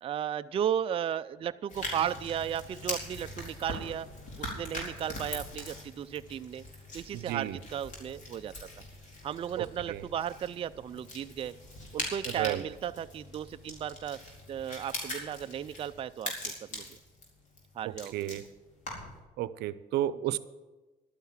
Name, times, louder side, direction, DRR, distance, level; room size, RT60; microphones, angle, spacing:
voice 1, 0.0-4.1 4.4-6.6 6.9-8.5 9.2-11.5 11.9-14.2 14.5-17.0 17.7-18.3 20.3-20.4, right 9 dB, 35° right, 11 dB, 0.4 m, -35 dB
sound 1, 1.7-19.2, left 1 dB, 50° left, 4.4 m, -42 dB
voice 2, 7.1-7.6 9.6-10.0 12.4-12.6 17.8-18.4 19.4-20.4, right 13 dB, 80° right, 15 dB, 0.6 m, -33 dB
12.0 x 9.4 x 7.3 m, 1.2 s
cardioid pair, 110°, 17 cm